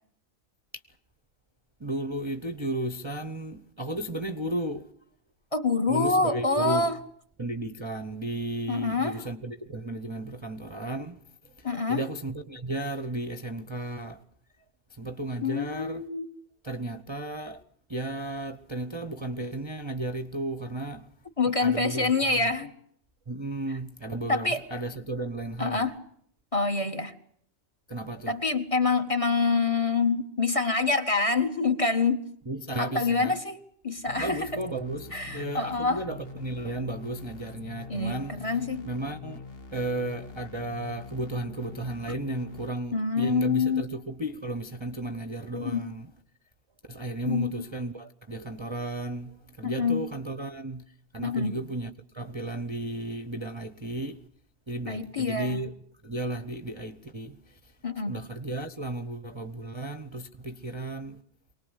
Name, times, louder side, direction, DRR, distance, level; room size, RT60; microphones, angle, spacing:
voice 1, 1.8-4.9 5.9-7.0 7.4-14.2 14.9-16.0 16.6-17.6 17.9-21.1 21.5-22.5 23.3-25.9 27.9-28.4 32.5-33.4 34.2-38.6 38.8-39.4 39.7-46.1 46.9-50.8 51.1-54.3 54.7-55.7 56.0-57.7 58.1-61.2, right 1 dB, 25° right, 0.9 m, -34 dB
voice 2, 5.5-6.9 8.7-9.1 11.6-12.0 15.4-16.2 21.4-22.7 24.3-24.6 25.6-25.9 26.5-27.1 28.3-32.2 32.8-34.5 35.1-36.0 37.9-38.9 42.9-43.8 45.5-45.9 47.3-47.5 49.6-50.0 51.2-51.5 54.9-55.6 57.8-58.2, left 4 dB, 25° left, 1.7 m, -26 dB
sound 1, 34.1-42.7, left 4 dB, 50° left, 1.6 m, -44 dB
24.0 x 19.0 x 8.2 m
omnidirectional pair, 1.4 m